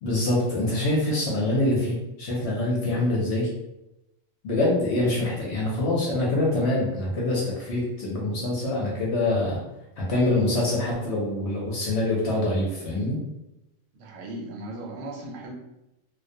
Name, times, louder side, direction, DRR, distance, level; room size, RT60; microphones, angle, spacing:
voice 1, 0.0-3.5 4.4-9.6 10.0-13.2, left 1 dB, 65° left, -4 dB, 0.8 m, -25 dB
voice 2, 13.9-15.5, right 1 dB, 75° right, -1 dB, 0.9 m, -37 dB
2.4 x 2.1 x 2.6 m, 0.92 s
omnidirectional pair, 1.4 m